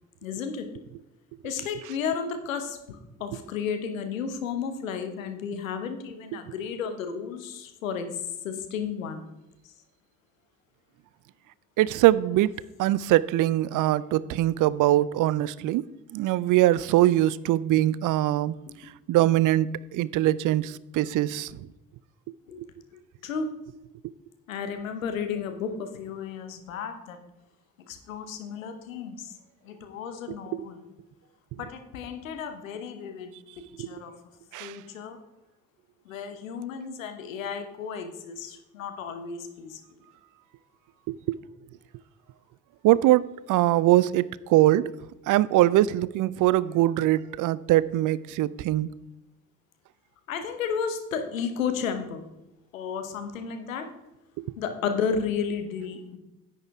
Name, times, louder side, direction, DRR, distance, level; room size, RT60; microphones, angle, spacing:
voice 1, 0.2-0.7 1.4-8.1 8.4-9.2 22.5-22.6 23.2-23.5 24.5-27.2 27.9-29.3 29.6-30.9 31.6-33.3 33.8-34.1 34.6-35.2 36.1-39.8 50.3-52.2 52.7-53.9 54.6-56.2, left 6 dB, 85° left, 1.0 m, -33 dB
voice 2, 11.8-12.5 12.8-15.8 16.1-18.5 19.1-21.7 22.6-22.7 30.5-30.7 33.8-33.9 34.5-34.8 41.1-41.4 42.8-44.9 45.3-48.9 54.4-54.5, right 15 dB, 55° right, 0.5 m, -22 dB
10.5 x 8.4 x 3.5 m
figure-of-eight pair, 45°, 39 cm